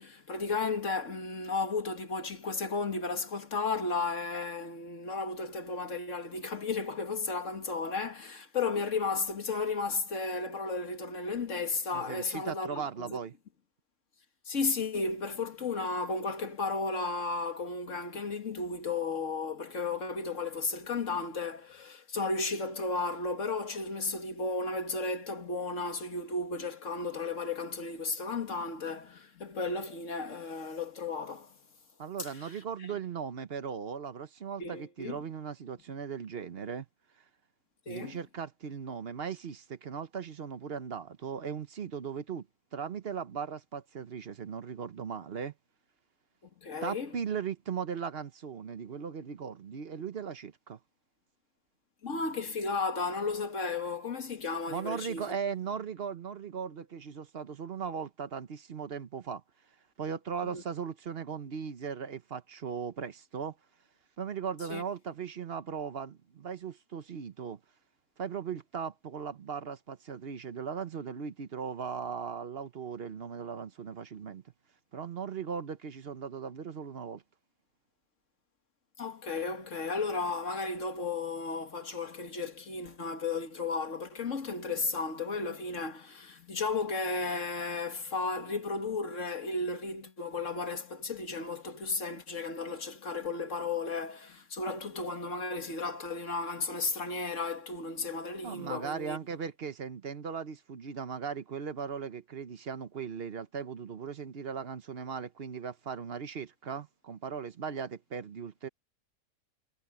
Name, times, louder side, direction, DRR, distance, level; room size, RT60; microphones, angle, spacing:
voice 1, 0.0-13.2 14.5-31.5 32.2-32.5 34.6-35.2 37.9-38.2 46.6-47.1 52.0-55.4 60.4-60.6 64.7-64.8 79.0-99.2, left 4 dB, 50° left, 2.2 m, -34 dB
voice 2, 11.9-13.3 32.0-36.9 37.9-42.5 42.7-45.5 46.8-50.8 54.7-59.4 60.0-63.6 64.2-67.6 68.2-74.4 74.9-77.2 98.4-108.7, right 6 dB, 45° right, 1.0 m, -38 dB
omnidirectional pair, 1.7 m